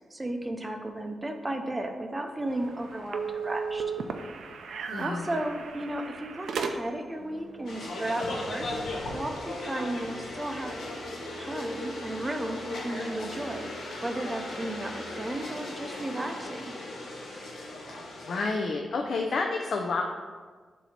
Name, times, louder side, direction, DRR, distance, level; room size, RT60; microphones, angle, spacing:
voice 1, 0.1-3.8 5.0-10.9 11.3-16.8, right 1 dB, 15° right, 4 dB, 0.6 m, -34 dB
sound 1, 2.5-7.2, right 5 dB, 85° right, 0.4 m, -35 dB
voice 2, 4.9-5.3 18.2-20.0, left 3 dB, 60° left, 1 dB, 0.5 m, -29 dB
sound 2, 7.2-18.9, equal, 40° left, 1.2 m, -51 dB
sound 3, 7.7-18.4, left 2 dB, 85° left, 1.3 m, -37 dB
7.1 x 2.7 x 5.8 m, 1.5 s
wide cardioid pair, 145°, 0 cm